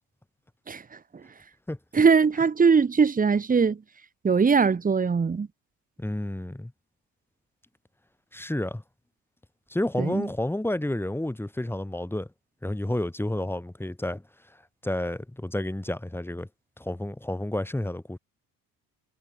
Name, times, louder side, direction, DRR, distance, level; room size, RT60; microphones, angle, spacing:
voice 1, 1.9-3.8 4.2-5.5 10.0-10.3, right 5 dB, 25° right, 1.8 m, -21 dB
voice 2, 6.0-6.7 8.3-8.8 9.7-12.3 12.6-14.2 14.8-16.5 16.8-18.2, left 1 dB, 5° left, 6.9 m, -30 dB
cardioid pair, 105°, 34 cm